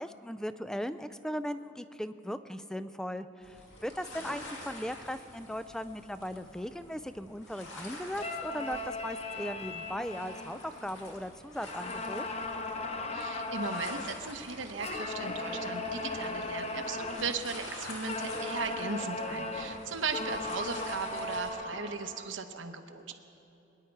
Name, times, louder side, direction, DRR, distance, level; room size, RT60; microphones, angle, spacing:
voice 1, 0.0-12.3, equal, 5° left, 12 dB, 0.3 m, -38 dB
sound 1, 3.4-21.5, left 1 dB, 85° left, 1.8 m, -48 dB
sound 2, 8.2-11.2 11.6-14.2 14.8-17.4 18.1-22.3, left 2 dB, 35° left, 0.7 m, -37 dB
voice 2, 13.1-23.1, right 4 dB, 85° right, 7 dB, 0.9 m, -37 dB
23.5 x 10.0 x 4.6 m, 3.0 s
head